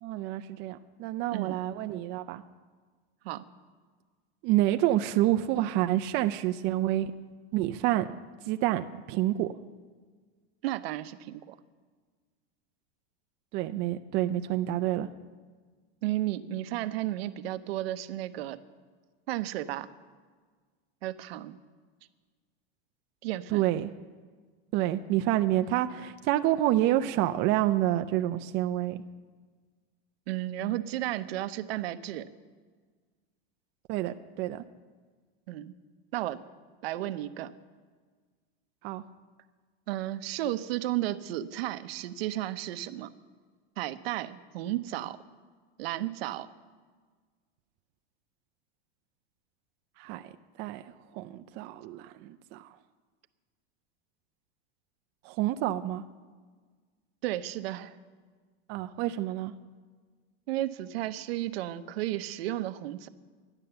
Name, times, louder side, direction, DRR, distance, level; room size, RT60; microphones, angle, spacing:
voice 1, 0.0-2.4 4.4-7.1 7.5-8.1 8.5-9.5 13.5-15.1 23.5-23.9 24.7-29.0 33.9-34.6 38.8-39.0 50.0-50.2 50.6-52.7 55.2-56.0 58.7-59.5, right 14 dB, 35° right, 8 dB, 0.4 m, -28 dB
voice 2, 10.6-11.6 16.0-18.6 19.3-19.9 21.0-21.6 23.2-23.7 30.3-32.3 35.5-35.7 36.1-36.4 36.8-37.5 39.9-43.1 43.8-45.2 45.8-46.5 57.2-57.9 60.5-63.1, right 14 dB, 70° right, 12 dB, 0.7 m, -33 dB
12.5 x 9.9 x 6.8 m, 1.5 s
supercardioid pair, 140°, 32 cm